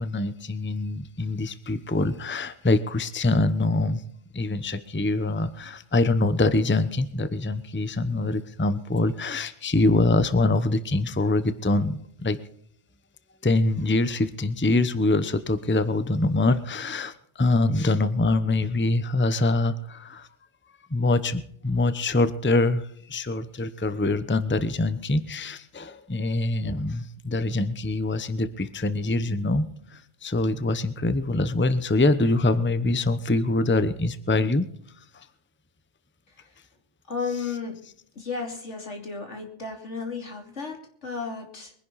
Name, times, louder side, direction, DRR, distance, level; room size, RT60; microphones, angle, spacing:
voice 1, 0.0-4.0 4.3-12.4 13.4-20.3 20.9-34.7 35.0-35.3, left 2 dB, 10° left, 12 dB, 0.8 m, -24 dB
voice 2, 37.1-37.8 38.1-41.7, left 4 dB, 80° left, 3 dB, 3.2 m, -33 dB
23.0 x 11.0 x 4.1 m, 0.65 s
omnidirectional pair, 1.2 m